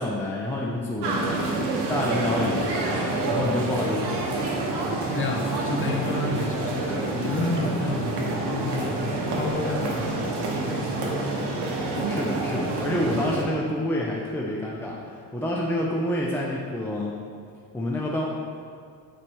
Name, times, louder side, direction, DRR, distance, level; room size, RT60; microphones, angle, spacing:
voice 1, 0.0-1.4 1.9-4.3 12.1-17.1 17.7-18.2, left 1 dB, 5° left, -3 dB, 0.3 m, -28 dB
sound 1, 1.0-13.4, right 2 dB, 75° right, 1.1 m, -28 dB
voice 2, 5.1-11.1 12.0-12.1, left 2 dB, 30° left, 0 dB, 0.7 m, -30 dB
8.8 x 3.2 x 4.4 m, 2.3 s
cardioid pair, 160°, 41 cm